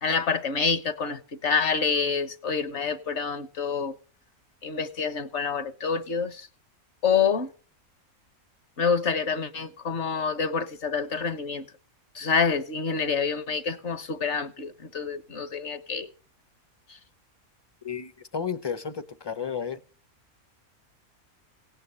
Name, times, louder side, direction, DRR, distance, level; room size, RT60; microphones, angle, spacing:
voice 1, 0.0-3.9 4.6-6.5 7.0-7.5 8.8-11.6 12.1-16.1 16.9-17.0, left 5 dB, 50° left, 1.4 m, -27 dB
voice 2, 17.8-19.8, left 6 dB, 20° left, 0.7 m, -32 dB
17.5 x 8.9 x 6.8 m
omnidirectional pair, 1.5 m